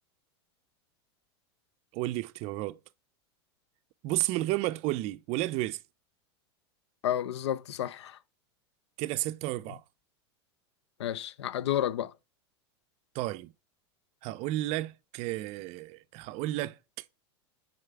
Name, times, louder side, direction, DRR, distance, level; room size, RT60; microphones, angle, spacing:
voice 1, 1.9-2.8 4.0-5.8 9.0-9.8 13.1-13.5 14.2-16.8, right 17 dB, 50° right, 0.4 m, -32 dB
voice 2, 7.0-8.2 11.0-12.1, left 11 dB, 85° left, 0.4 m, -31 dB
4.7 x 4.1 x 5.7 m
hypercardioid pair, 100°, 14 cm